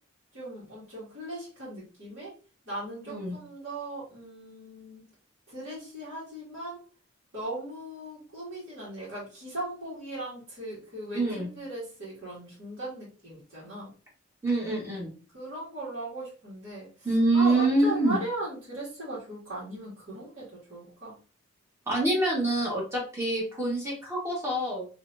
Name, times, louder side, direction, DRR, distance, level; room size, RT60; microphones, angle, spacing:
voice 1, 0.3-2.3 2.7-5.1 5.5-6.8 7.3-13.9 15.3-17.1 17.3-21.2, right 1 dB, 65° right, -10 dB, 2.2 m, -38 dB
voice 2, 3.1-3.4 11.1-11.5 14.4-15.1 17.0-18.2 21.9-24.9, right 2 dB, 15° right, -4 dB, 1.4 m, -26 dB
4.2 x 3.2 x 2.6 m, 0.36 s
head